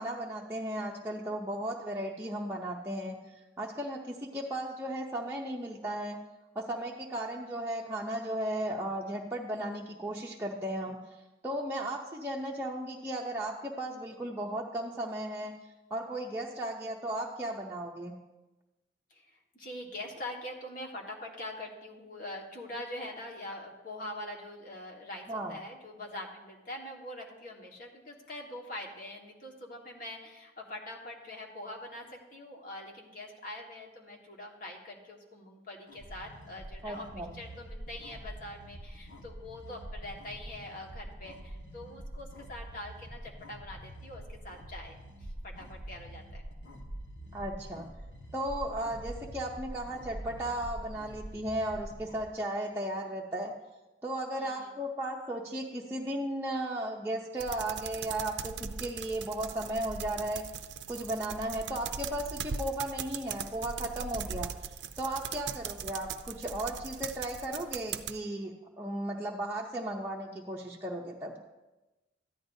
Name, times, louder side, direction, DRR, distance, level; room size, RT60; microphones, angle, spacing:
voice 1, 0.0-6.2 6.5-11.0 11.4-15.5 15.9-18.2 25.3-25.5 36.8-37.4 47.3-47.9 48.3-53.5 54.0-60.4 60.9-64.5 65.0-71.3, right 1 dB, 15° right, -3 dB, 0.6 m, -35 dB
voice 2, 19.1-46.4 54.3-54.8 65.5-65.6, left 1 dB, 50° left, -1 dB, 1.6 m, -44 dB
sound 1, 35.9-52.3, right 1 dB, 65° left, 1.5 m, -45 dB
sound 2, 57.4-68.2, right 7 dB, 75° right, 0.5 m, -40 dB
14.0 x 10.5 x 2.7 m, 1.1 s
head